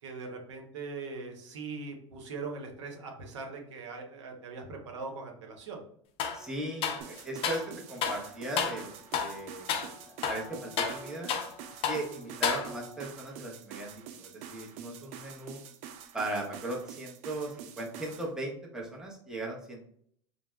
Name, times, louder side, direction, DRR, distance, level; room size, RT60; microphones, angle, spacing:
voice 1, 0.0-5.8, right 4 dB, 85° right, 2 dB, 0.7 m, -41 dB
sound 1, 6.2-6.4 6.8-7.7 8.0-8.2 8.6-8.8 9.1-9.4 9.7-9.9 10.2-11.6 11.8-12.1 12.4-13.0, left 6 dB, 40° left, 0.4 m, -31 dB
voice 2, 6.3-9.9 10.2-11.3 11.9-15.6 16.1-19.8, right 1 dB, 5° right, -2 dB, 0.7 m, -38 dB
sound 2, 7.0-18.3, right 8 dB, 50° right, 0.4 m, -47 dB
3.4 x 2.0 x 2.2 m, 0.63 s
supercardioid pair, 115°, 15 cm